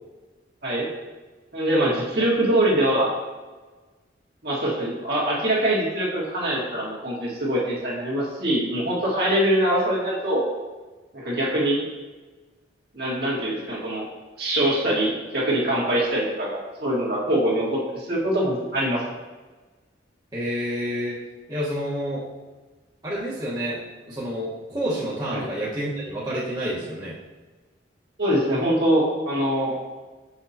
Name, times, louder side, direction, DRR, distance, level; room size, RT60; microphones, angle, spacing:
voice 1, 1.5-3.1 4.4-10.4 11.1-11.8 12.9-14.1 14.4-19.0 25.3-25.5 28.2-29.7, right 1 dB, 60° right, -5 dB, 2.0 m, -23 dB
voice 2, 20.3-21.2 21.5-22.2 23.0-23.8 24.0-27.1, equal, 25° right, -9 dB, 1.4 m, -29 dB
7.2 x 6.1 x 2.9 m, 1.3 s
head